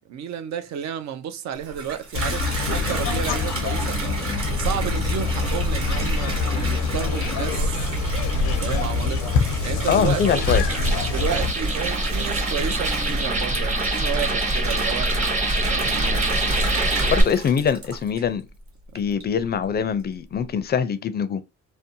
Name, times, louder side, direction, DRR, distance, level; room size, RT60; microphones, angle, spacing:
voice 1, 0.1-4.2 4.6-7.9 8.2-9.3 9.6-10.4 11.0-15.1 15.7-16.4, right 9 dB, 65° right, 0.5 m, -32 dB
Water tap faucet / Bathtub (filling or washing), 1.5-18.5 18.9-19.5, right 3 dB, 45° right, 1.1 m, -33 dB
sound 1, 2.1-11.5, left 4 dB, 85° left, 0.6 m, -25 dB
voice 2, 9.9-10.6 17.1-18.5 18.9-21.4, left 7 dB, 35° left, 0.4 m, -23 dB
sound 2, 10.1-17.2, right 1 dB, 25° right, 0.8 m, -24 dB
2.6 x 2.1 x 2.6 m
cardioid pair, 90°, 30 cm